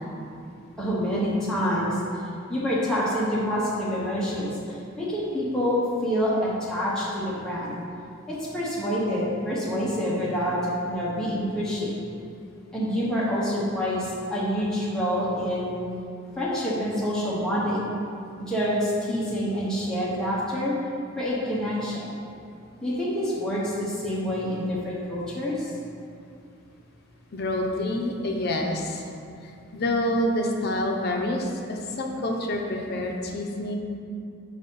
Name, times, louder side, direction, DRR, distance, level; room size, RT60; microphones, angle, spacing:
voice 1, 0.8-2.0 2.5-7.7 8.3-11.9 12.7-15.8 16.4-17.9 18.4-20.8 21.2-22.1 22.8-25.7, equal, 5° left, -9 dB, 0.9 m, -27 dB
voice 2, 27.3-29.1 29.7-33.7, left 1 dB, 50° left, 1 dB, 0.6 m, -27 dB
5.0 x 4.1 x 5.4 m, 2.5 s
head